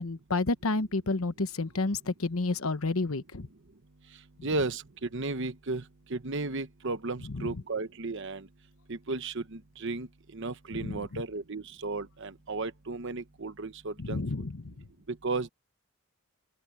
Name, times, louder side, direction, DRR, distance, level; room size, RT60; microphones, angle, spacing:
voice 1, 0.0-3.5 7.3-7.5 10.8-11.0 14.0-14.7, left 3 dB, 80° left, 1.1 m, -30 dB
voice 2, 4.4-4.8 5.1-5.8 6.1-8.5 8.9-10.1 10.3-14.2 15.1-15.5, right 3 dB, 60° right, 1.1 m, -34 dB
open air
head